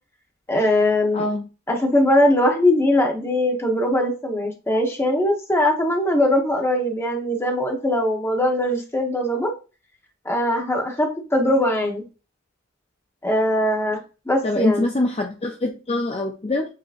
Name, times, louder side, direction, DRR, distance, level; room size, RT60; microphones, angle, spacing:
voice 1, 0.5-1.2 1.7-9.5 10.2-12.0 13.2-14.0 14.3-14.9, left 1 dB, 15° left, 2 dB, 0.9 m, -21 dB
voice 2, 1.1-1.5 14.4-16.7, left 2 dB, 30° left, 2 dB, 0.5 m, -24 dB
7.5 x 2.9 x 2.5 m, 0.32 s
head